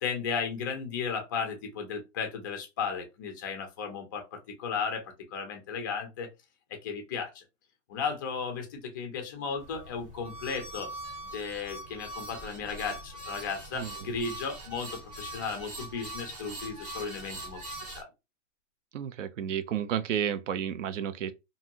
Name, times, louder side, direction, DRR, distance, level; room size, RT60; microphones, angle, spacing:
voice 1, 0.0-6.3 6.7-7.4 7.9-10.9 11.3-17.6 17.9-18.1, left 5 dB, 20° left, 0.3 m, -35 dB
sound 1, 9.6-18.0, right 1 dB, 20° right, 0.7 m, -42 dB
voice 2, 18.9-21.3, right 9 dB, 85° right, 0.5 m, -31 dB
2.6 x 2.5 x 2.8 m
hypercardioid pair, 140°, 36 cm